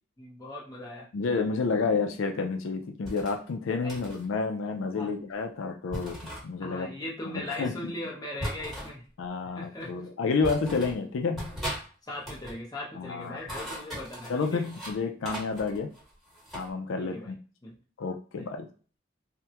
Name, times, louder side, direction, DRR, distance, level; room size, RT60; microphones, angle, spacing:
voice 1, 0.2-1.1 3.8-4.0 4.9-5.1 6.6-9.1 9.5-9.9 12.0-14.7 17.0-17.3 17.6-17.8 18.3-18.5, left 1 dB, 20° left, -3 dB, 0.8 m, -39 dB
voice 2, 1.1-6.9 7.3-7.8 9.2-11.6 12.9-13.6 14.3-15.9 16.5-17.4 18.0-18.7, left 4 dB, 85° left, 5 dB, 0.4 m, -30 dB
sound 1, 3.0-3.4 3.9-4.3 5.9-6.4 8.4-8.9 9.8-9.9 10.4-11.0 11.4-11.8 12.1-12.6 13.3-15.0 15.2-16.7, equal, ahead, 1.2 m, -38 dB
3.3 x 2.1 x 2.8 m, 0.39 s
head